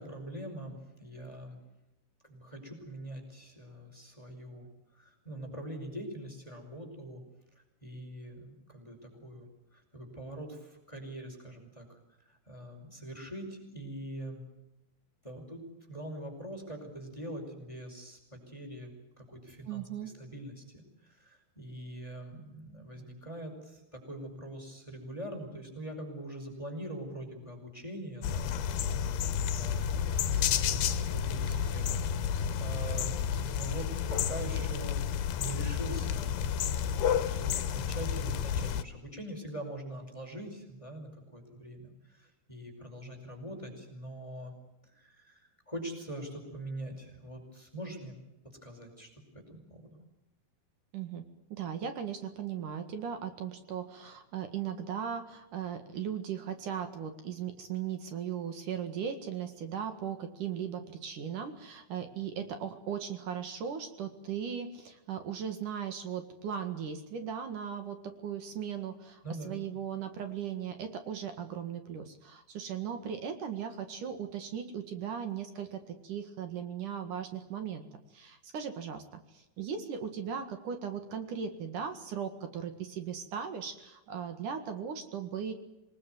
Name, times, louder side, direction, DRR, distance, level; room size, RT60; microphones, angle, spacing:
voice 1, 0.0-1.6 2.2-4.7 4.9-7.2 7.8-12.0 12.3-14.4 15.2-28.9 29.5-44.5 44.9-48.1 48.6-50.0 69.2-69.6, right 1 dB, 5° left, 4 dB, 5.3 m, -43 dB
voice 2, 19.7-20.1 50.9-51.2 51.5-69.2 69.4-77.9 78.1-79.0 79.3-85.5, right 8 dB, 60° right, 8 dB, 3.1 m, -38 dB
sound 1, 28.2-38.8, left 8 dB, 85° left, 3.1 m, -31 dB
27.0 x 20.0 x 9.4 m, 0.95 s
omnidirectional pair, 4.5 m